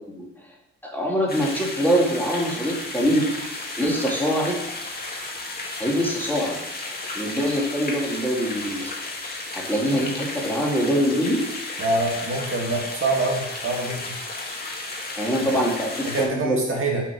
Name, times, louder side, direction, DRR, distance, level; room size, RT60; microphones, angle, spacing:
voice 1, 0.8-3.3 3.8-4.6 5.8-6.6 7.1-8.9 9.5-11.4 15.2-16.6, equal, 5° left, -3 dB, 2.4 m, -23 dB
sound 1, 1.3-16.2, left 2 dB, 30° left, 2.2 m, -33 dB
voice 2, 11.8-14.1 15.4-15.5 16.1-17.0, right 2 dB, 45° right, -1 dB, 2.3 m, -25 dB
6.3 x 5.9 x 6.3 m, 0.85 s
cardioid pair, 90°, 30 cm